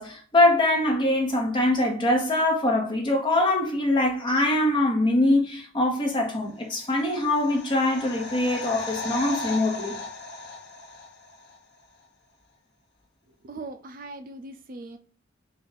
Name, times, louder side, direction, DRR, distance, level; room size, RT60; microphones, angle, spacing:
voice 1, 0.0-10.0, left 1 dB, 25° left, 1.1 m, -23 dB
sound 1, 6.7-11.6 11.8-11.9, left 3 dB, 60° left, 0.8 m, -36 dB
voice 2, 13.4-15.0, right 2 dB, 45° right, 0.5 m, -40 dB
4.3 x 2.6 x 3.8 m
head